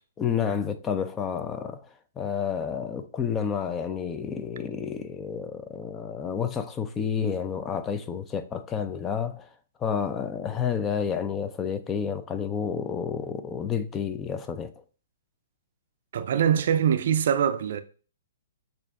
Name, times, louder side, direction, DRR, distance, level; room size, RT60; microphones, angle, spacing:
voice 1, 0.2-1.9 2.2-9.5 9.8-14.8, left 7 dB, 20° left, 0.4 m, -30 dB
voice 2, 16.1-17.8, right 8 dB, 60° right, 0.4 m, -23 dB
6.7 x 2.6 x 2.5 m
hypercardioid pair, 130°, 0 cm